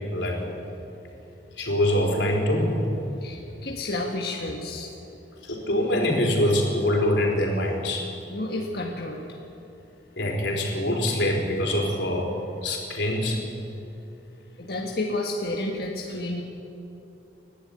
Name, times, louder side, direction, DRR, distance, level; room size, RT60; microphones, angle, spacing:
voice 1, 1.6-2.8 5.4-8.1 10.2-12.3 12.6-13.4, left 1 dB, 90° left, -1 dB, 4.3 m, -24 dB
voice 2, 3.2-4.9 8.3-9.2 14.6-16.4, left 2 dB, 60° left, -1 dB, 1.7 m, -30 dB
29.0 x 12.0 x 8.7 m, 2.8 s
head